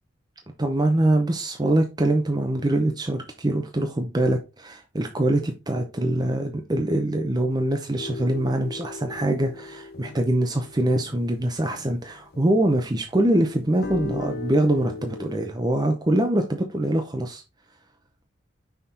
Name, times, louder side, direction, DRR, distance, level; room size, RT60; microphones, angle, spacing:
voice 1, 0.6-17.4, right 1 dB, 20° right, 0.6 m, -24 dB
sound 1, 8.0-12.8 13.2-15.5, left 3 dB, 50° left, 0.7 m, -38 dB
5.8 x 4.1 x 4.2 m
head